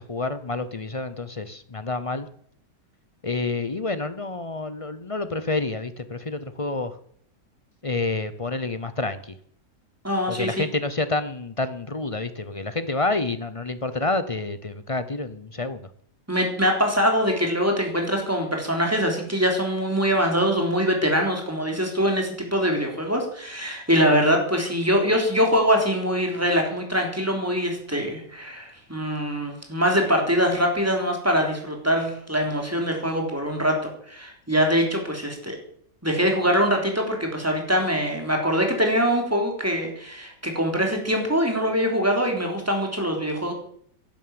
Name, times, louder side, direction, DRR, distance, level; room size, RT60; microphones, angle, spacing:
voice 1, 0.0-2.3 3.2-7.0 7.8-9.3 10.3-15.9, left 3 dB, 30° left, 12 dB, 0.6 m, -28 dB
voice 2, 10.0-10.6 16.3-35.6 36.0-43.5, equal, 10° right, 2 dB, 3.7 m, -23 dB
12.0 x 11.0 x 8.9 m, 0.64 s
omnidirectional pair, 1.8 m